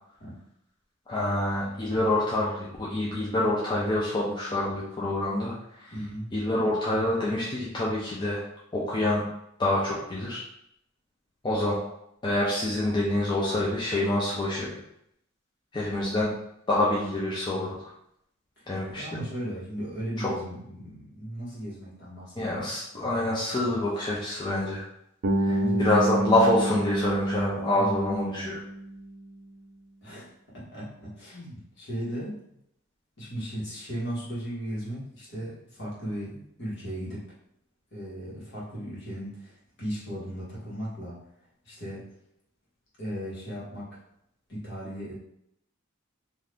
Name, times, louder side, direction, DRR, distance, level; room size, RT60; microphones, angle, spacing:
voice 1, 1.1-5.5 5.8-5.9 6.3-8.4 8.7-9.2 9.6-10.4 11.4-11.8 12.2-14.7 15.7-16.3 16.7-17.8 18.7-19.0 20.2-20.3 22.4-24.8 25.4-28.6, left 1 dB, 20° left, -6 dB, 0.5 m, -26 dB
voice 2, 5.9-6.3 18.6-22.8 25.5-26.3 27.7-28.5 30.0-32.4 33.2-37.2 37.9-41.2 41.6-42.1 43.0-44.0 44.5-45.1, equal, 60° left, -7 dB, 1.4 m, -36 dB
Bass guitar, 25.2-29.2, right 1 dB, 85° right, 0.6 m, -29 dB
2.7 x 2.4 x 3.4 m, 0.76 s
head